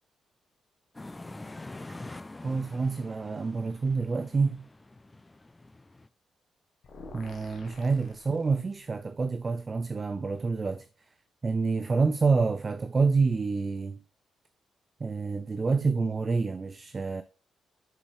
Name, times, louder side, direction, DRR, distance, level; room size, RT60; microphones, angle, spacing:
sound 1, 0.9-6.1, left 2 dB, 20° left, 0.5 m, -45 dB
voice 1, 2.4-4.6 7.1-10.9 11.4-14.0 15.0-17.2, right 4 dB, 40° right, 0.5 m, -27 dB
sound 2, 6.8-9.0, left 2 dB, 60° left, 1.4 m, -49 dB
7.6 x 6.9 x 3.3 m
hypercardioid pair, 40°, 0 cm